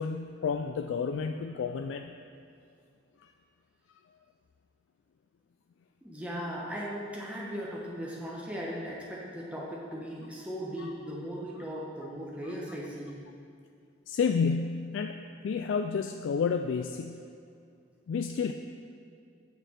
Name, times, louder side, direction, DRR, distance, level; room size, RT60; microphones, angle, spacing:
voice 1, 0.0-2.1 10.8-10.9 14.1-15.2 15.4-17.2 18.1-18.5, left 5 dB, 70° left, 6 dB, 0.3 m, -30 dB
voice 2, 6.0-13.2, equal, 5° right, -5 dB, 1.0 m, -38 dB
9.0 x 6.8 x 4.3 m, 2.4 s
head